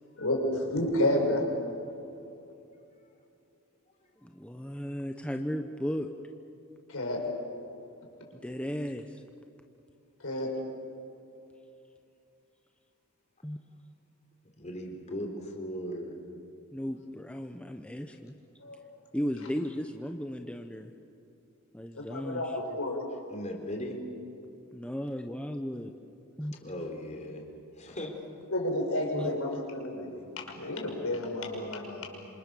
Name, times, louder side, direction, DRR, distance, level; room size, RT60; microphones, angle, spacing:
voice 1, 0.2-1.4 6.9-7.2 10.2-10.5 18.6-18.9 21.9-23.0 28.5-30.2 30.6-32.0, left 1 dB, 70° left, 1 dB, 5.7 m, -30 dB
voice 2, 4.2-6.1 8.4-9.2 13.4-13.6 16.7-18.3 19.1-20.9 21.7-22.5 24.7-25.9 26.4-26.5 27.9-28.1 29.1-29.3, equal, 5° left, 4 dB, 1.0 m, -35 dB
voice 3, 14.6-16.1 23.3-24.0 26.6-27.4 27.7-28.1, equal, 35° left, 2 dB, 3.7 m, -38 dB
27.5 x 26.5 x 7.0 m, 2.7 s
head